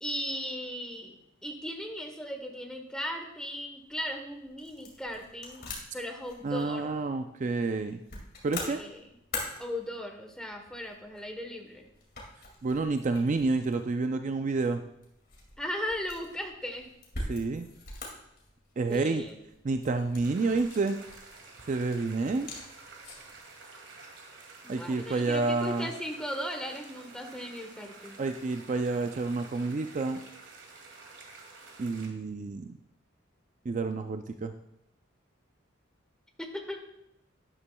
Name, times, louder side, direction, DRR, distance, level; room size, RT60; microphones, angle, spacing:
voice 1, 0.0-1.1 1.4-5.6 5.9-6.8 8.6-9.0 9.6-11.9 15.6-16.9 18.9-19.4 24.6-28.2 36.4-36.8, left 1 dB, 5° left, 3 dB, 1.0 m, -37 dB
sound 1, 3.8-23.4, left 2 dB, 50° left, 2.3 m, -45 dB
voice 2, 6.4-8.0 8.4-8.8 12.6-14.8 17.3-17.7 18.8-19.2 19.6-21.0 21.7-22.5 24.7-25.9 28.2-30.2 31.8-32.8 33.6-34.5, right 3 dB, 40° right, 7 dB, 0.4 m, -29 dB
sound 2, 20.2-32.1, right 4 dB, 65° right, 1.7 m, -50 dB
12.0 x 9.9 x 2.3 m, 0.82 s
head